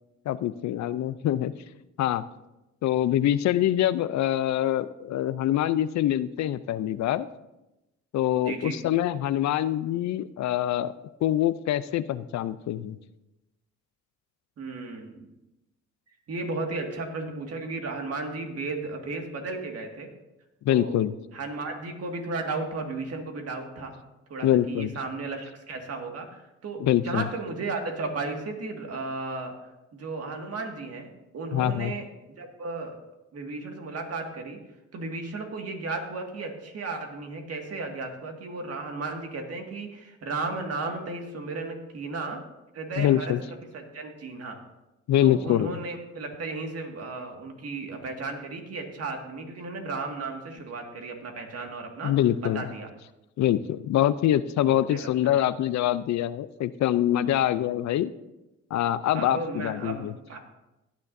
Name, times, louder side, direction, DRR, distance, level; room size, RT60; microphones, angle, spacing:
voice 1, 0.3-1.5 2.0-2.2 2.8-7.3 8.1-10.9 11.2-13.0 20.6-21.1 24.4-25.0 26.8-27.3 31.5-31.9 43.0-43.4 45.1-45.8 52.0-52.6 53.4-58.1 58.7-60.1, left 12 dB, 65° left, 15 dB, 0.5 m, -25 dB
voice 2, 8.4-8.8 14.6-15.3 16.3-20.1 20.7-21.0 21.3-23.9 24.3-32.1 32.4-33.0 33.3-34.6 34.9-42.4 42.7-43.4 43.7-44.6 45.2-52.1 52.4-52.9 54.6-55.4 57.3-57.5 59.1-60.4, right 3 dB, 55° right, 3 dB, 1.9 m, -34 dB
16.5 x 9.5 x 2.6 m, 0.97 s
cardioid pair, 90°, 30 cm